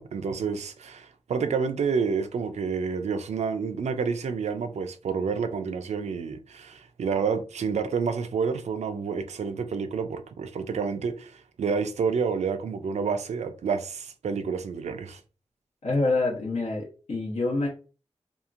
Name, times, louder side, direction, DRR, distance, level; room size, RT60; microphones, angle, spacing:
voice 1, 0.0-15.2, right 5 dB, 90° right, 0.4 m, -29 dB
voice 2, 15.8-17.7, left 2 dB, 80° left, 0.9 m, -26 dB
2.8 x 2.4 x 2.4 m
wide cardioid pair, 120°, 11 cm